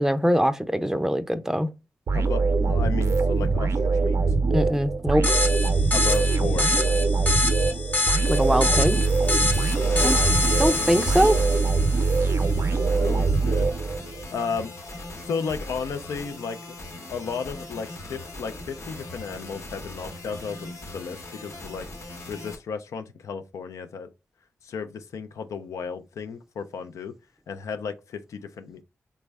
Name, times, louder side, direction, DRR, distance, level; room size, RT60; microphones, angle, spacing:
voice 1, 0.0-1.7 4.5-5.2 8.3-9.0 10.0-10.2 10.6-11.4, equal, 10° right, 0.4 m, -22 dB
voice 2, 2.1-4.2 5.9-6.7 9.4-9.6 12.7-13.7 14.3-14.7 15.2-16.8 17.1-21.9 22.3-24.1 24.6-27.2 27.5-28.8, left 5 dB, 90° left, 0.4 m, -34 dB
sound 1, 2.1-14.3, right 4 dB, 65° right, 0.5 m, -23 dB
sound 2, 5.2-12.4, left 3 dB, 30° left, 0.7 m, -27 dB
sound 3, 8.3-22.6, left 2 dB, 70° left, 0.9 m, -38 dB
3.4 x 2.1 x 3.3 m
cardioid pair, 50°, 5 cm